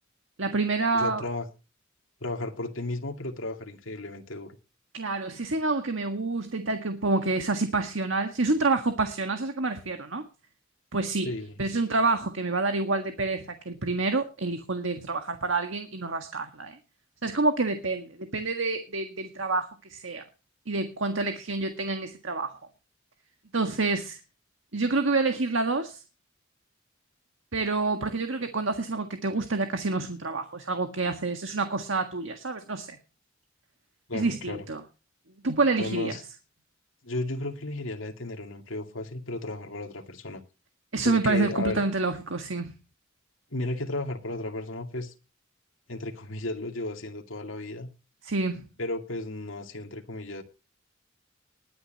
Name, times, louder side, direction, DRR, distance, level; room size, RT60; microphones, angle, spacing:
voice 1, 0.4-1.2 4.9-10.2 10.9-11.3 11.6-16.8 17.2-20.2 20.7-22.6 23.5-24.2 24.7-26.0 27.5-33.0 34.1-34.8 35.4-36.1 40.9-42.7 48.2-48.7, right 3 dB, 75° right, 6 dB, 1.7 m, -28 dB
voice 2, 0.9-1.5 2.2-4.6 11.2-11.6 34.1-34.7 35.8-36.2 37.0-40.4 41.0-41.8 43.5-45.1 45.9-47.9 48.8-50.4, left 2 dB, 90° left, 4 dB, 2.3 m, -34 dB
20.5 x 10.0 x 3.0 m, 0.31 s
head